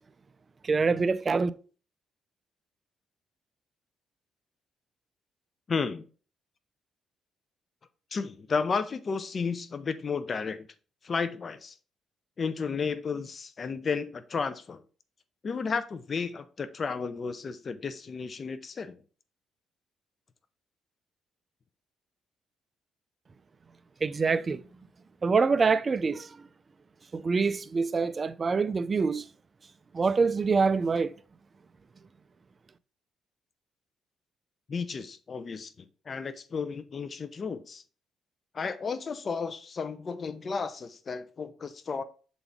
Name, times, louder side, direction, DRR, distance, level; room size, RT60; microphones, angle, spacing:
voice 1, 0.6-1.5 24.0-24.7 25.2-26.3 27.1-29.2 29.9-31.1, right 4 dB, 35° right, 0.4 m, -25 dB
voice 2, 5.7-6.1 8.1-10.7 11.0-11.8 12.4-14.8 15.4-18.9 34.7-37.8 38.5-42.0, left 5 dB, 40° left, 0.7 m, -33 dB
7.0 x 4.1 x 3.5 m
cardioid pair, 90°, 0 cm